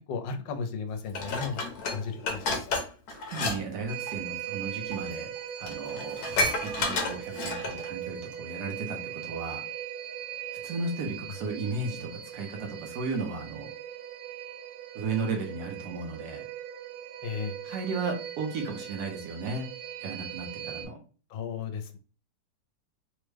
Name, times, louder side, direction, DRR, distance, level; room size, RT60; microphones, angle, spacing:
voice 1, 0.1-2.7 17.2-17.5 21.3-22.0, left 5 dB, 80° left, 7 dB, 1.3 m, -35 dB
Dishes pots and pans, 1.1-3.6 3.9-4.1 4.9-5.0 5.4-5.5 5.7-7.9 8.3-8.4, left 3 dB, 65° left, 1.1 m, -30 dB
voice 2, 3.1-5.3 5.6-6.2 6.6-9.6 10.6-13.7 14.9-16.4 17.6-19.7 20.0-21.0, right 3 dB, 70° right, 3 dB, 1.2 m, -34 dB
sound 1, 3.9-20.9, right 10 dB, 85° right, 0.7 m, -39 dB
3.4 x 2.1 x 3.2 m, 0.37 s
omnidirectional pair, 2.0 m